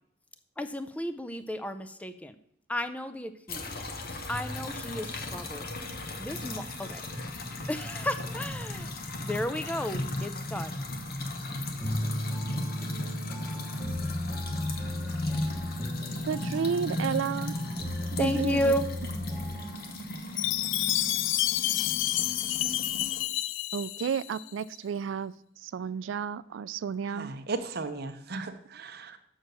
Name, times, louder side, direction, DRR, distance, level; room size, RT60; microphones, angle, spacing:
voice 1, 0.6-2.4 2.7-3.8 4.3-5.7 6.2-7.0 7.7-8.9 9.2-10.8 18.2-18.9, left 1 dB, 5° left, 0.4 m, -32 dB
sound 1, 3.5-23.2, left 1 dB, 50° left, 1.1 m, -36 dB
sound 2, 11.8-19.9, left 1 dB, 10° right, 1.4 m, -36 dB
voice 2, 16.3-17.6 18.1-18.7 23.7-25.3 25.6-27.3, right 7 dB, 70° right, 0.3 m, -32 dB
Chime, 20.4-24.5, left 14 dB, 75° left, 0.3 m, -29 dB
voice 3, 27.1-29.2, right 3 dB, 55° right, 0.7 m, -36 dB
6.5 x 6.3 x 6.6 m
head